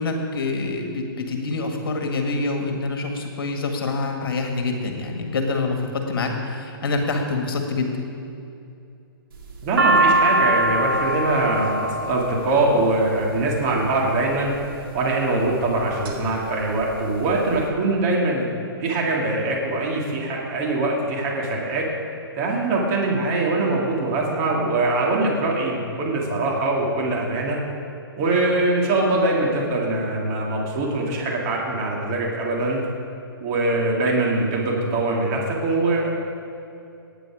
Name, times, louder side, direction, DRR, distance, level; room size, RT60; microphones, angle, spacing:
voice 1, 0.0-7.9, left 3 dB, 65° left, 3 dB, 1.9 m, -26 dB
sound 1, 9.3-13.6 14.4-14.9 15.5-16.1 16.5-16.6 16.7-17.6, right 1 dB, 65° right, 2.8 m, -22 dB
voice 2, 9.6-14.5 14.9-18.5 18.8-21.9 22.3-27.6 28.2-32.8 33.4-36.1, right 2 dB, 35° right, -2 dB, 2.7 m, -23 dB
18.5 x 8.9 x 5.0 m, 2.6 s
hypercardioid pair, 135°, 13 cm